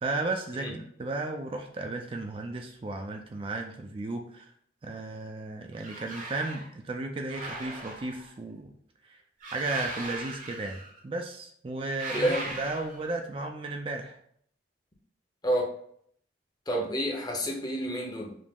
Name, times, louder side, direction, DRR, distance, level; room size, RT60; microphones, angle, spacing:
voice 1, 0.0-4.5 4.8-8.7 9.1-9.2 9.5-14.2, right 2 dB, 30° right, 3 dB, 0.4 m, -34 dB
sound 1, 5.7-6.7 7.3-8.3 9.4-11.0 11.9-13.1, right 2 dB, 45° right, 0.8 m, -39 dB
voice 2, 12.1-12.5 15.4-15.8 16.7-18.3, equal, 25° left, 0 dB, 0.7 m, -29 dB
5.1 x 2.0 x 3.5 m, 0.65 s
head